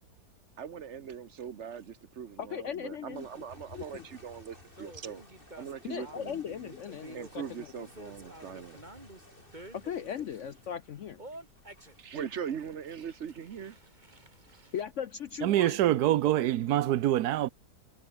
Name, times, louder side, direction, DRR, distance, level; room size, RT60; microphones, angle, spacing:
voice 1, 0.6-5.2 5.6-6.4 7.1-8.8 12.0-13.8, right 7 dB, 50° right, 1.1 m, -41 dB
voice 2, 2.4-3.4 3.7-4.1 5.9-7.7 9.7-11.2 14.7-16.5, left 8 dB, 60° left, 0.9 m, -38 dB
sound 1, 3.1-15.7, left 1 dB, 30° left, 5.5 m, -57 dB
sound 2, 4.8-10.7 11.2-14.8, right 1 dB, 25° right, 4.9 m, -50 dB
voice 3, 15.4-17.5, right 13 dB, 70° right, 1.2 m, -25 dB
omnidirectional pair, 1.8 m